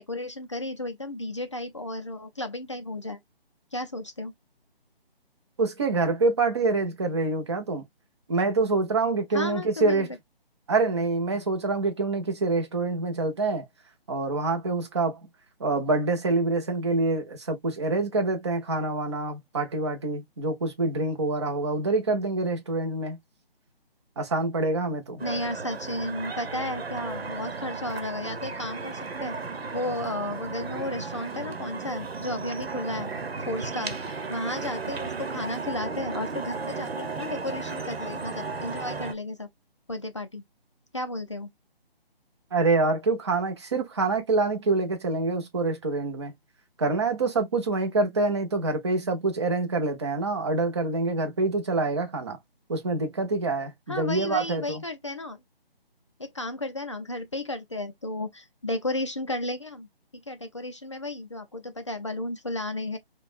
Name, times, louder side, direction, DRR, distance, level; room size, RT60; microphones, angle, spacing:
voice 1, 0.0-3.2 3.7-4.3 9.3-10.1 25.2-29.4 29.7-33.1 33.5-34.0 34.3-39.5 39.9-40.4 40.9-41.5 53.9-55.4 56.2-59.9 60.1-63.0, left 2 dB, 30° left, 0.4 m, -33 dB
voice 2, 5.6-7.8 8.3-10.1 10.7-13.7 14.1-15.2 15.6-23.2 24.2-25.2 42.5-46.3 46.8-52.4 52.7-54.8, right 3 dB, 30° right, 0.8 m, -26 dB
sound 1, 25.2-39.1, right 4 dB, 85° right, 1.0 m, -35 dB
5.0 x 2.2 x 2.5 m
figure-of-eight pair, 160°, 30 cm